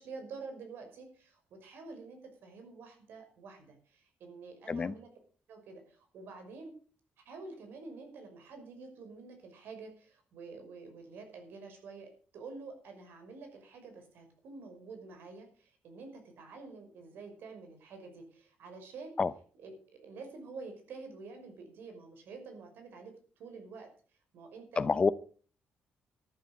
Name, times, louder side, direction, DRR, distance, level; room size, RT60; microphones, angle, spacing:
voice 1, 0.0-5.1 5.5-6.7 7.2-19.2 19.6-23.1 23.4-23.9 24.3-24.8, right 4 dB, 75° right, 6 dB, 5.7 m, -48 dB
voice 2, 24.8-25.1, left 4 dB, 25° left, 17 dB, 0.6 m, -27 dB
13.5 x 11.5 x 5.3 m, 0.42 s
cardioid pair, 160°, 4 cm